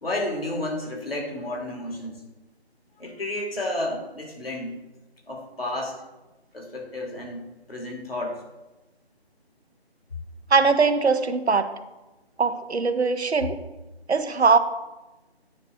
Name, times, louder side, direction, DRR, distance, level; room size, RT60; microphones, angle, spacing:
voice 1, 0.0-2.2 3.0-4.8 5.3-6.0 6.5-8.4, left 1 dB, 65° left, -1 dB, 2.4 m, -31 dB
voice 2, 10.5-11.7 12.4-13.6 14.1-14.6, right 4 dB, 80° right, 10 dB, 0.8 m, -21 dB
9.3 x 3.3 x 6.1 m, 1.0 s
figure-of-eight pair, 160°, 32 cm